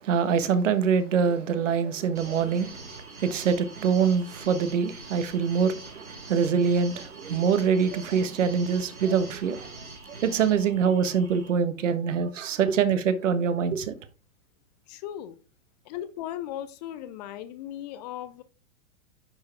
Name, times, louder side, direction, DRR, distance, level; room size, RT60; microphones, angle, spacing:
voice 1, 0.0-9.8 10.1-13.9, right 6 dB, 60° right, 1.4 m, -25 dB
sound 1, 2.1-11.5, right 3 dB, 85° right, 3.2 m, -44 dB
voice 2, 14.9-15.4 15.9-18.4, left 11 dB, 30° left, 0.5 m, -37 dB
10.5 x 4.8 x 3.4 m
figure-of-eight pair, 115°, 41 cm